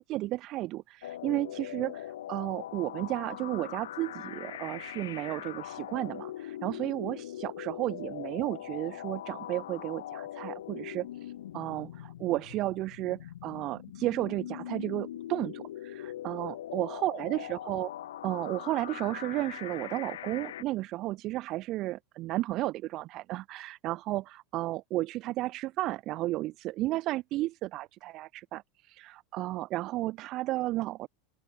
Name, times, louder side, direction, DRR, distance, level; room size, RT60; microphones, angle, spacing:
voice 1, 0.1-17.9 18.2-31.1, right 17 dB, 50° right, 2.2 m, -33 dB
sound 1, 1.0-20.6, left 12 dB, 80° left, 4.4 m, -41 dB
open air
hypercardioid pair, 95°, 0 cm